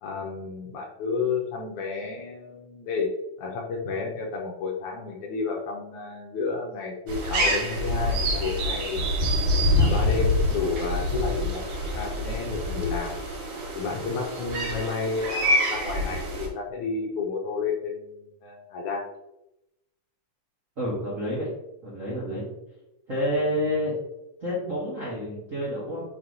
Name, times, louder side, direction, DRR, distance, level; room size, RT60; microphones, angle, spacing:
voice 1, 0.0-3.1 3.4-9.1 9.7-13.2 13.7-19.1, left 4 dB, 70° left, -1 dB, 2.0 m, -31 dB
sound 1, 7.1-16.5, left 1 dB, 70° right, 3.0 m, -26 dB
voice 2, 20.8-21.5 21.8-22.4 23.1-24.0 24.4-26.0, equal, 45° right, -7 dB, 1.0 m, -28 dB
5.8 x 3.2 x 5.3 m, 0.90 s
omnidirectional pair, 4.1 m